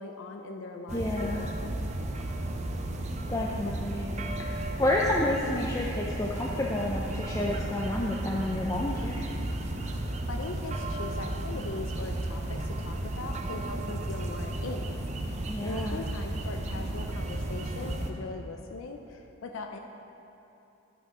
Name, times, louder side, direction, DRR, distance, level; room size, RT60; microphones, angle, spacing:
voice 1, 0.0-1.5 10.3-14.9 15.6-19.8, left 3 dB, 65° left, 4 dB, 0.5 m, -40 dB
voice 2, 0.9-1.4 3.3-4.1 4.4-4.5 4.8-9.3 15.5-16.0, left 1 dB, 15° left, -3 dB, 0.5 m, -30 dB
sound 1, 0.9-18.1, right 1 dB, 30° right, 0.5 m, -34 dB
10.0 x 6.5 x 4.9 m, 2.9 s
head